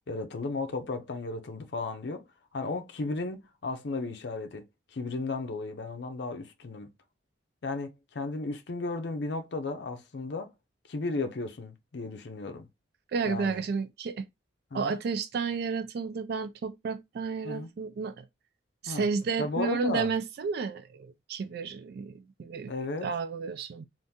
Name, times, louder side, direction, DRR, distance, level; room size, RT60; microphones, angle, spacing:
voice 1, 0.1-2.3 2.5-4.7 4.9-6.9 7.6-10.5 10.9-12.7 13.2-13.6 14.7-15.0 17.4-17.7 18.9-19.1 19.4-20.1 22.7-23.1, left 3 dB, 60° left, 0.5 m, -34 dB
voice 2, 13.1-14.3 14.7-18.2 18.8-22.7 23.0-23.9, right 5 dB, 55° right, 0.3 m, -32 dB
3.5 x 2.5 x 2.6 m
head